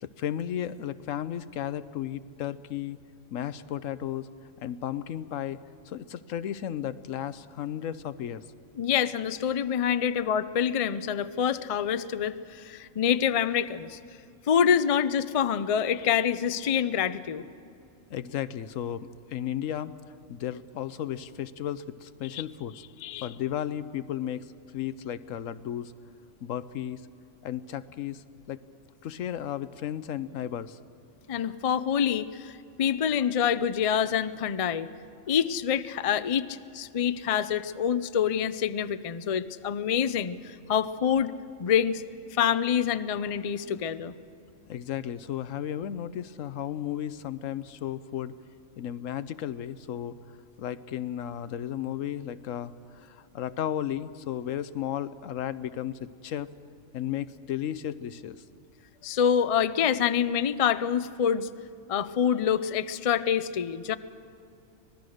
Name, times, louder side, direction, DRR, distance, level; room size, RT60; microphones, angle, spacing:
voice 1, 0.0-3.0 3.3-4.3 4.6-5.6 5.9-8.4 10.1-10.2 18.1-19.9 20.3-22.8 23.2-25.9 26.4-27.0 27.4-28.6 29.0-30.8 44.7-48.3 48.8-50.2 50.6-56.5 56.9-58.4, left 10 dB, 75° left, 14 dB, 1.1 m, -34 dB
voice 2, 8.8-14.0 14.5-17.4 22.2-22.4 23.0-23.3 31.3-34.9 35.3-41.3 41.6-42.0 42.3-44.1 59.0-61.5 61.9-63.9, left 8 dB, 55° left, 13 dB, 0.3 m, -26 dB
25.5 x 19.0 x 6.4 m, 2.5 s
omnidirectional pair, 1.4 m